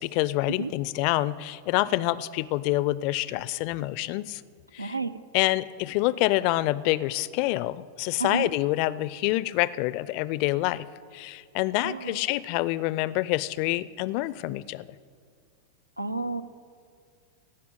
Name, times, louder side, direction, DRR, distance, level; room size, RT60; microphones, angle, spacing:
voice 1, 0.0-4.4 4.7-5.0 5.3-10.9 11.1-14.9, left 17 dB, 45° left, 18 dB, 0.4 m, -27 dB
voice 2, 4.8-5.2 8.2-8.5 11.8-12.2 16.0-16.4, right 3 dB, 85° right, 12 dB, 0.5 m, -31 dB
16.0 x 5.5 x 9.0 m, 2.1 s
figure-of-eight pair, 90°, 0 cm